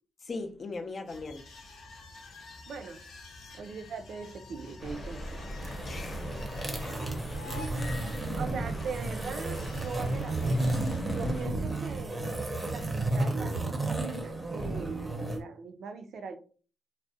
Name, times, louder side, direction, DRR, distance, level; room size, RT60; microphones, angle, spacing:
voice 1, 0.2-1.5 5.8-6.5 7.4-7.7, left 3 dB, 45° left, 0.4 m, -39 dB
sound 1, 1.1-11.0, left 3 dB, 85° left, 0.6 m, -48 dB
voice 2, 2.7-3.0 3.5-5.5 7.5-10.7 11.1-12.3 12.6-16.4, right 5 dB, 70° right, 0.4 m, -41 dB
sound 2, 4.8-11.5, equal, 25° left, 0.8 m, -41 dB
sound 3, 5.5-15.4, right 2 dB, 20° right, 0.6 m, -32 dB
2.4 x 2.0 x 2.6 m
cardioid pair, 100°, 0 cm